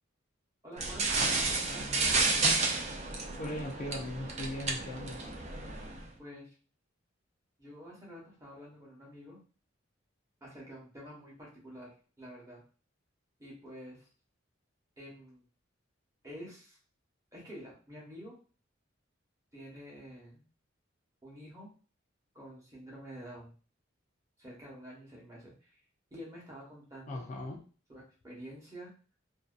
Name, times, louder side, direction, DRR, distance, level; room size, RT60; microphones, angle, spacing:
voice 1, 0.6-2.3 6.2-6.5 7.6-9.4 10.4-11.9 12.2-12.6 13.4-14.1 15.0-15.4 16.2-16.8 17.3-18.4 19.5-20.4 21.2-21.7 22.3-23.5 24.4-25.8 26.1-27.3 27.9-28.9, equal, 15° right, -4 dB, 0.9 m, -48 dB
sound 1, 0.8-6.0, right 3 dB, 35° right, 0.4 m, -31 dB
voice 2, 3.4-5.3 27.1-27.6, left 1 dB, 40° left, 1 dB, 0.3 m, -39 dB
2.6 x 2.2 x 2.3 m, 0.38 s
head